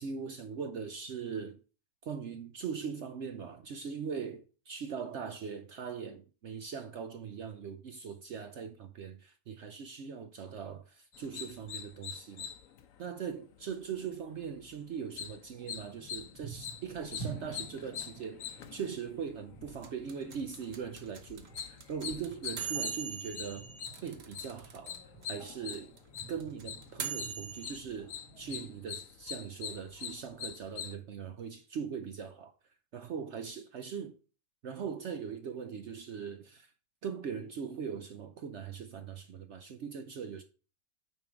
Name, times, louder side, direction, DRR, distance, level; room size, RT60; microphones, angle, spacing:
voice 1, 0.0-1.6 2.0-12.5 13.0-23.7 24.0-25.0 25.3-25.9 26.3-32.5 32.9-34.2 34.6-36.7 37.0-40.4, right 6 dB, 60° right, 0.7 m, -40 dB
sound 1, 11.1-30.9, left 8 dB, 65° left, 1.1 m, -45 dB
sound 2, 15.7-28.8, right 3 dB, 85° left, 2.4 m, -50 dB
sound 3, 19.8-25.0 25.2-25.3 25.5-27.8, right 7 dB, 45° right, 1.1 m, -40 dB
8.8 x 3.6 x 4.5 m
omnidirectional pair, 1.7 m